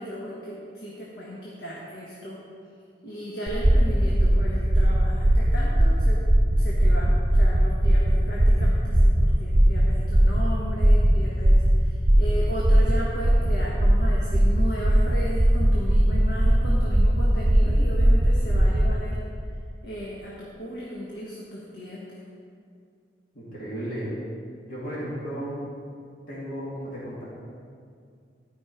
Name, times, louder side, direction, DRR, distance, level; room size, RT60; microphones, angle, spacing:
voice 1, 0.0-2.4 3.0-6.2 6.6-19.2 19.8-22.2, equal, 80° left, -5 dB, 1.3 m, -36 dB
heartbeat (fast but inconsistent), 3.5-18.9, right 1 dB, 35° right, 1.1 m, -19 dB
voice 2, 23.3-24.1 24.7-25.6 26.3-27.2, right 1 dB, 50° left, -8 dB, 2.3 m, -34 dB
12.0 x 5.2 x 5.0 m, 2.3 s
head